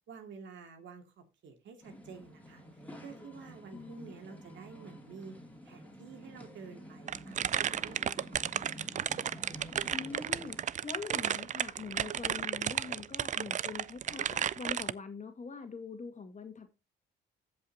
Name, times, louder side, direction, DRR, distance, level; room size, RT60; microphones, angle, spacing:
voice 1, 0.1-2.6 3.0-5.4 5.7-8.9, right 5 dB, 70° right, 2.6 m, -50 dB
sound 1, 1.8-10.6, equal, 10° left, 2.7 m, -50 dB
voice 2, 3.7-4.1 9.9-10.6 10.8-16.7, left 5 dB, 40° left, 2.0 m, -43 dB
sound 2, 7.1-14.9, right 9 dB, 40° right, 0.4 m, -33 dB
15.0 x 5.4 x 2.8 m
cardioid pair, 90°, 20 cm